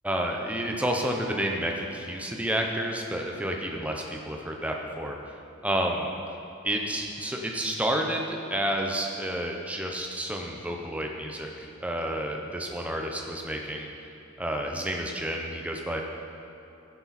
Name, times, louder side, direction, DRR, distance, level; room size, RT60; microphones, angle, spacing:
voice 1, 0.0-5.2 5.6-6.1 6.6-13.9 14.4-16.0, right 1 dB, 5° right, 1 dB, 0.8 m, -30 dB
12.0 x 11.0 x 4.3 m, 2.8 s
head